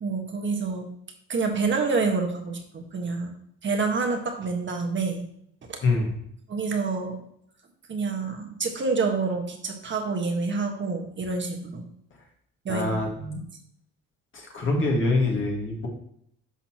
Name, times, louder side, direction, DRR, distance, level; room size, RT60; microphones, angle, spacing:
voice 1, 0.0-0.9 1.3-3.3 3.6-5.2 5.7-5.8 6.5-7.2 7.9-11.8 12.6-12.9 13.2-13.4, right 4 dB, 40° right, 4 dB, 1.5 m, -27 dB
voice 2, 12.7-13.1 14.3-15.9, left 2 dB, 40° left, 0 dB, 1.9 m, -24 dB
12.0 x 4.0 x 3.0 m, 0.70 s
cardioid pair, 95°, 30 cm